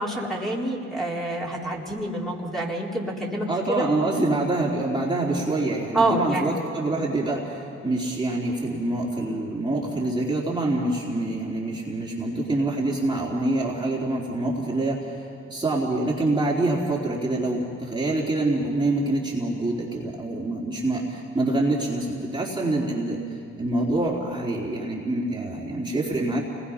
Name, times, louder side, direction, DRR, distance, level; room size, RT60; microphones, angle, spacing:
voice 1, 0.0-3.9 5.9-6.5, right 1 dB, ahead, -5 dB, 3.9 m, -27 dB
voice 2, 3.5-15.2 15.5-23.2 23.6-26.4, right 2 dB, 15° right, -4 dB, 3.5 m, -26 dB
29.5 x 20.5 x 5.8 m, 2.6 s
cardioid pair, 90°, 30 cm